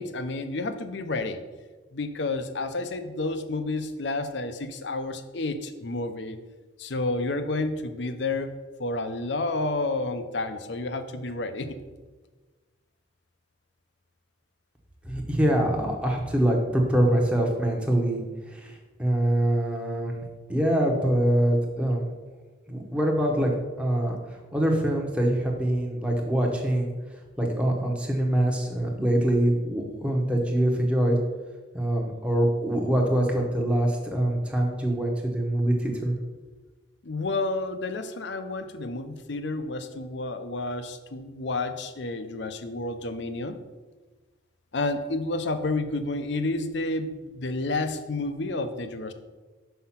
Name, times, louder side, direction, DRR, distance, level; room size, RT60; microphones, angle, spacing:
voice 1, 0.0-1.4 1.9-6.4 6.8-8.5 8.8-11.7 37.0-43.6 44.7-49.1, left 2 dB, 65° left, 9 dB, 0.6 m, -30 dB
voice 2, 15.0-20.2 20.5-22.0 22.7-26.9 27.4-31.2 31.7-36.2, right 1 dB, 5° right, 0 dB, 0.9 m, -24 dB
5.7 x 5.4 x 5.7 m, 1.3 s
head